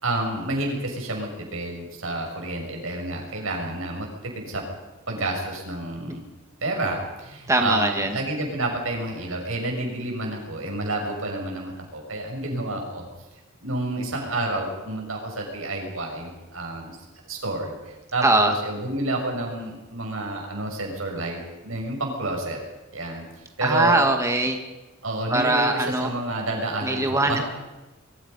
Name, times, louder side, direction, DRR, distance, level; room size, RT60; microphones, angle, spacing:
voice 1, 0.0-4.6 5.1-6.2 6.6-13.1 13.6-17.0 17.3-22.6 22.9-23.2 23.6-23.9 25.0-27.4, right 2 dB, 80° right, 1 dB, 6.6 m, -29 dB
voice 2, 7.5-8.2 18.2-18.5 23.6-24.6 25.3-26.1 26.8-27.4, right 2 dB, 15° right, 4 dB, 1.7 m, -21 dB
25.0 x 23.0 x 5.5 m, 1.1 s
head